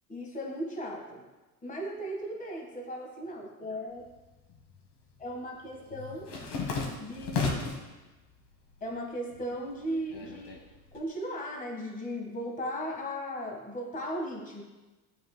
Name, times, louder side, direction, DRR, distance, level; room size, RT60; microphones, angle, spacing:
voice 1, 0.1-1.2 1.6-4.1 5.2-6.3 7.0-7.6 8.8-10.6 10.9-14.6, equal, 15° left, 0 dB, 1.4 m, -37 dB
sound 1, 4.0-4.8 5.1-7.9 8.4-9.0 9.3-11.0, left 4 dB, 50° left, 1.5 m, -35 dB
11.0 x 4.8 x 2.2 m, 1.2 s
hypercardioid pair, 75°, 47 cm